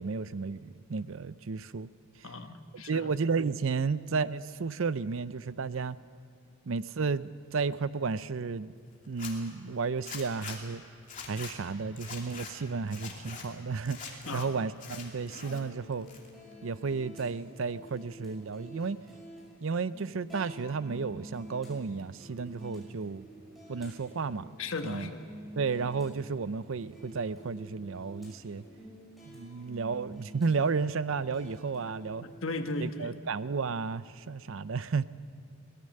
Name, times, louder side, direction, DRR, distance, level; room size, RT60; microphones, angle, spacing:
voice 1, 0.0-1.9 2.2-2.3 2.7-6.0 6.7-8.7 9.1-10.8 11.3-16.1 16.6-19.0 19.6-23.3 23.7-24.4 24.8-25.1 25.6-28.6 29.3-32.2 32.8-35.0, right 4 dB, 65° right, 16 dB, 0.5 m, -32 dB
voice 2, 2.2-3.1 14.3-14.5 24.6-25.3 32.2-33.2, left 2 dB, 65° left, 6 dB, 1.3 m, -36 dB
Zipper (clothing), 9.0-9.3 10.0-10.6 11.0-11.5 12.0-12.5 12.9-13.4 13.9-14.4 14.8-15.6 15.9-16.5, left 6 dB, 35° left, 2.7 m, -43 dB
sound 1, 15.1-32.9, right 1 dB, ahead, 6.4 m, -50 dB
23.5 x 18.0 x 6.6 m, 2.4 s
head